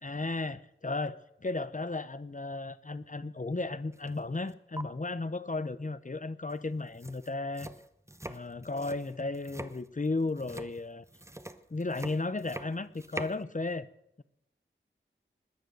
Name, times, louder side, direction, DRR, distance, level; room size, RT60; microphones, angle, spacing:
voice 1, 0.0-7.7 8.3-11.1 11.7-13.9, left 3 dB, 40° left, 15 dB, 0.8 m, -34 dB
sound 1, 3.9-4.2 4.5-4.8 6.5-6.6 6.9-13.4, right 1 dB, 15° right, 0.9 m, -44 dB
20.5 x 8.1 x 6.6 m, 0.80 s
wide cardioid pair, 40°, 21 cm